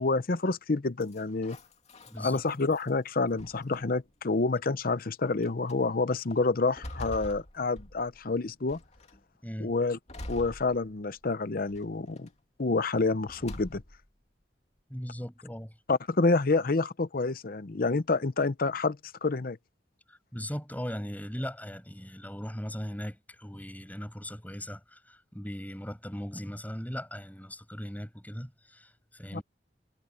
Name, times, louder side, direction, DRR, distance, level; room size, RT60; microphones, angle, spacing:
voice 1, 0.0-1.6 2.2-8.8 9.6-10.0 10.3-12.3 12.6-13.8 15.9-19.6 29.3-29.4, left 3 dB, 55° left, 0.8 m, -28 dB
sound 1, 1.0-2.9 3.4-4.1 4.9-5.0 5.4-5.8 6.3-8.3 8.7-9.2 10.1-11.2 11.7-12.3 13.3-14.1, left 1 dB, 40° left, 2.5 m, -45 dB
voice 2, 2.1-2.4 9.4-9.7 14.9-15.7 20.1-29.4, equal, 10° left, 6.5 m, -39 dB
head